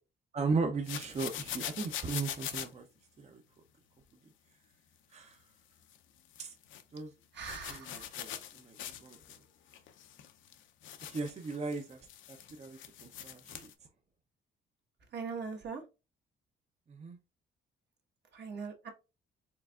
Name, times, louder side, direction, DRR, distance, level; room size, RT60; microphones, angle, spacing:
voice 1, 0.3-2.9 3.2-3.4 5.1-5.4 6.4-6.5 6.9-7.1 7.7-8.8 9.0-9.2 11.1-12.0 12.3-13.7 16.9-17.2, right 4 dB, 35° right, 4 dB, 0.6 m, -37 dB
sound 1, 0.8-2.7 5.8-6.0 6.3-6.8 7.4-9.4 9.7-13.7, left 11 dB, 80° left, 0.6 m, -43 dB
voice 2, 7.3-8.1 15.1-15.8 18.3-18.9, right 5 dB, 60° right, 2 dB, 1.3 m, -41 dB
4.6 x 3.3 x 2.4 m, 0.28 s
cardioid pair, 90°, 20 cm